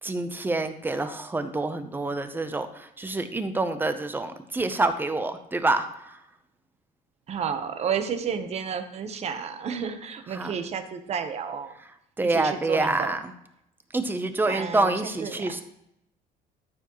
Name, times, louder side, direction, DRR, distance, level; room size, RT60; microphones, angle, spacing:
voice 1, 0.0-6.2 10.3-10.5 12.2-13.3 13.9-15.6, right 2 dB, 10° right, 9 dB, 0.7 m, -27 dB
voice 2, 7.3-11.7 12.2-13.1 14.5-15.5, right 7 dB, 40° right, 9 dB, 1.0 m, -31 dB
13.5 x 7.1 x 3.1 m, 0.79 s
cardioid pair, 155°, 17 cm